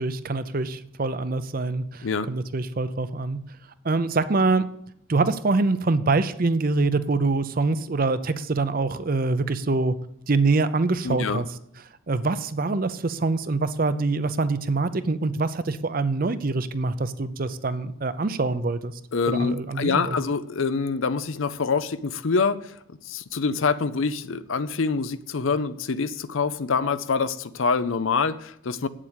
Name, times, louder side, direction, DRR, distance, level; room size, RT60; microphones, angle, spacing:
voice 1, 0.0-3.4 3.8-4.7 5.1-9.9 10.3-11.5 12.1-18.9 19.3-20.2, right 3 dB, 45° right, 13 dB, 0.6 m, -24 dB
voice 2, 11.0-11.4 19.1-22.7 23.1-28.9, left 4 dB, 70° left, 15 dB, 0.6 m, -25 dB
8.6 x 7.4 x 8.1 m, 0.74 s
head